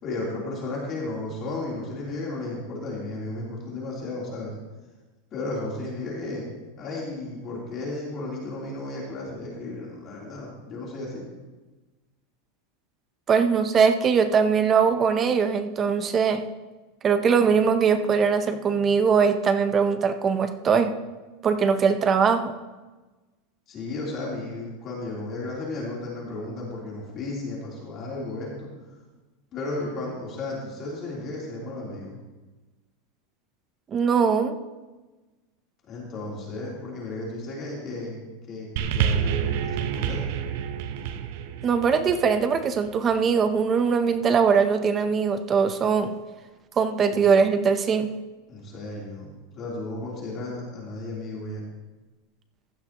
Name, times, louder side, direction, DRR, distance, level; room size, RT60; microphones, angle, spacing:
voice 1, 0.0-4.5 5.3-6.4 6.8-11.2 23.7-28.7 29.5-32.2 35.9-38.2 38.5-40.2 47.1-47.2 48.5-51.6, left 2 dB, 30° left, -4 dB, 3.3 m, -34 dB
voice 2, 13.3-16.5 17.0-21.0 21.4-22.5 33.9-34.6 41.6-46.1 46.8-48.1, right 6 dB, 20° right, 9 dB, 0.6 m, -21 dB
sound 1, 38.8-43.3 44.1-44.2, right 8 dB, 60° right, 0.7 m, -29 dB
15.5 x 11.5 x 2.9 m, 1.2 s
supercardioid pair, 165°, 0 cm